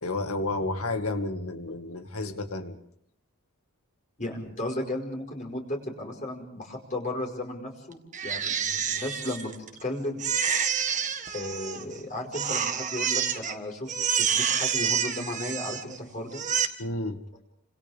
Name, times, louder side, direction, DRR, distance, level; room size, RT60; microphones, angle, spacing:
voice 1, 0.0-2.8 16.8-17.2, left 2 dB, 80° left, 6 dB, 2.2 m, -31 dB
voice 2, 4.2-9.5 9.8-10.2 11.3-13.9 14.2-16.4, left 1 dB, 35° left, 0 dB, 5.1 m, -34 dB
Crying sobbing, 8.1-9.8 10.2-12.0 12.3-13.5 13.9-16.0 16.3-16.7, right 7 dB, 35° right, 1.6 m, -28 dB
30.0 x 26.5 x 3.6 m, 0.68 s
head